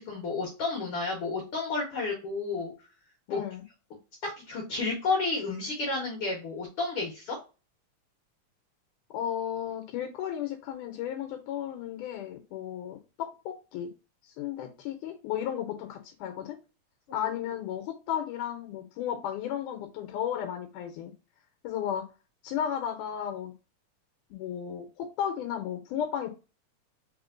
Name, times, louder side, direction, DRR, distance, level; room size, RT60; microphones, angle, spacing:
voice 1, 0.0-2.7 3.3-3.4 4.2-7.4 17.1-17.3, left 3 dB, 60° left, 1.6 m, -31 dB
voice 2, 3.3-3.6 9.1-13.9 14.2-16.6 17.1-21.1 21.6-22.1 22.4-23.5 24.3-26.3, left 9 dB, 85° left, 2.1 m, -34 dB
4.3 x 3.6 x 2.4 m
omnidirectional pair, 3.7 m